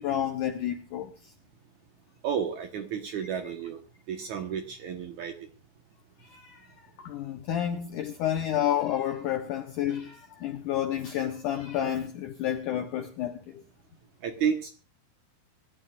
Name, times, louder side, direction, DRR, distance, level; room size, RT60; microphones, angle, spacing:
voice 1, 0.0-1.3 3.4-3.5 6.2-13.6, left 10 dB, 80° left, 1.9 m, -30 dB
voice 2, 2.2-3.8 4.1-5.3 14.2-14.7, right 7 dB, 65° right, 2.0 m, -31 dB
25.0 x 12.5 x 2.4 m
omnidirectional pair, 4.9 m